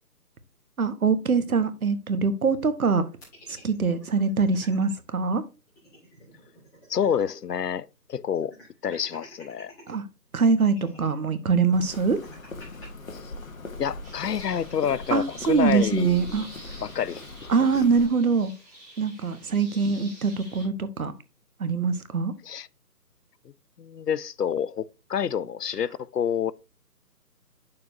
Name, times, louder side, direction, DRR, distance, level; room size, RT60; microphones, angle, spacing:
voice 1, 0.8-3.1 3.5-5.4 9.9-10.0 10.3-12.2 15.1-16.5 17.5-18.5 19.0-21.1 21.6-22.3, right 5 dB, 60° right, 1.2 m, -23 dB
sound 1, 3.2-4.9 5.3-5.4 5.7-7.5 7.7-7.8 8.3-9.9 10.6-12.9, left 1 dB, 5° left, 2.2 m, -51 dB
voice 2, 6.9-8.5 8.8-9.7 13.2-13.3 13.8-16.4 16.8-17.5 22.4-22.7 23.8-26.5, left 8 dB, 70° left, 0.6 m, -28 dB
Walk footsteps, 11.7-18.1, left 3 dB, 55° left, 1.3 m, -40 dB
sound 2, 14.0-20.7, right 1 dB, 10° right, 2.8 m, -48 dB
8.8 x 6.8 x 2.7 m
figure-of-eight pair, 160°, 49 cm